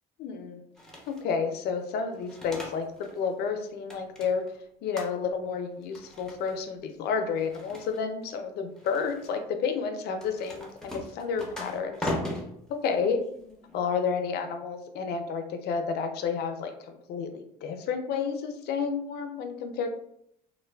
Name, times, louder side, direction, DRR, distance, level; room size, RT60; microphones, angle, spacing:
voice 1, 0.2-0.6 1.1-4.4 4.8-12.1 12.7-13.2 13.7-19.9, left 5 dB, 70° left, 6 dB, 0.4 m, -31 dB
sound 1, 0.8-1.3 2.1-3.2 3.5-4.6 4.9-5.5 5.8-6.6 7.3-8.3 8.8-9.3 10.1-13.8, left 1 dB, 5° left, 0.6 m, -39 dB
3.1 x 2.1 x 2.2 m, 0.72 s
cardioid pair, 110°, 17 cm